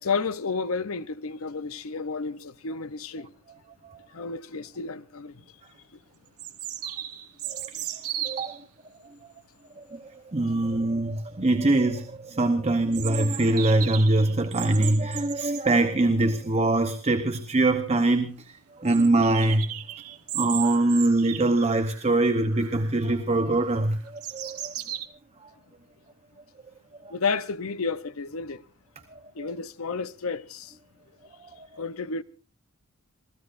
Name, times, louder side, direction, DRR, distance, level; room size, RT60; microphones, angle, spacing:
voice 1, 0.0-3.3 4.1-5.4 27.1-28.6 29.3-30.8 31.8-32.2, left 4 dB, 65° left, 0.7 m, -31 dB
sound 1, 5.4-5.5 6.4-8.6 12.9-15.7 17.3-17.4 17.6-17.7 18.1-18.2 18.9-22.1 22.5-23.0 23.5-25.0, right 12 dB, 80° right, 1.3 m, -36 dB
voice 2, 7.5-8.6 9.8-19.7 20.3-24.7 29.1-29.5 31.6-31.8, right 2 dB, 30° right, 0.9 m, -24 dB
28.0 x 16.5 x 2.5 m
head